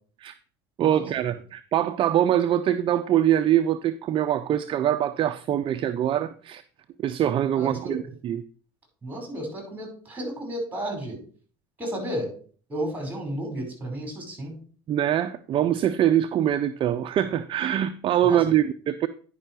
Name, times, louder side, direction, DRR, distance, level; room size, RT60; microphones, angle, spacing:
voice 1, 0.8-6.6 7.0-8.4 14.9-19.1, right 11 dB, 40° right, 0.5 m, -23 dB
voice 2, 7.5-8.0 9.0-11.2 11.8-12.3 12.7-14.5 18.2-18.4, right 1 dB, 15° right, 5.2 m, -32 dB
10.0 x 5.5 x 4.7 m
hypercardioid pair, 90°, 13 cm